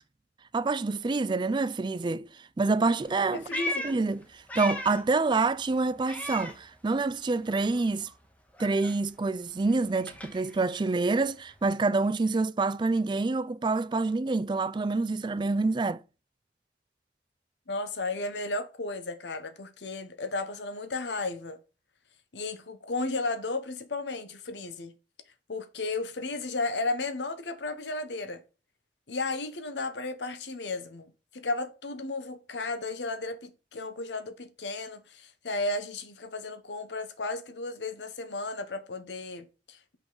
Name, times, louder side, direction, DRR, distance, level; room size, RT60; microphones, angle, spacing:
voice 1, 0.5-2.3 2.6-3.5 3.8-4.2 4.6-8.1 8.6-16.0, right 3 dB, 25° right, 0.3 m, -27 dB
Meow, 3.0-5.2 5.5-7.2 7.5-11.6, left 1 dB, 10° left, 0.9 m, -39 dB
voice 2, 3.3-3.9 17.7-21.6 22.3-25.0 25.5-28.4 29.1-40.0, left 3 dB, 85° left, 1.0 m, -34 dB
5.9 x 5.2 x 3.9 m
head